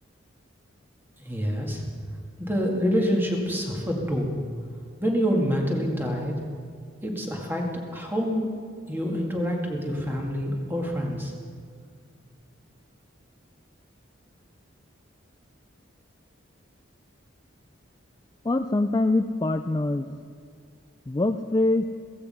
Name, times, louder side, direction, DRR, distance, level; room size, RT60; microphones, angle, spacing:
voice 1, 1.2-1.9 2.4-4.3 5.0-6.4 7.0-7.7 7.9-8.5 8.9-11.3, equal, 10° right, 0 dB, 2.0 m, -26 dB
voice 2, 18.4-20.2 21.1-21.8, left 2 dB, 20° left, 7 dB, 0.3 m, -24 dB
16.0 x 15.5 x 5.6 m, 2.2 s
head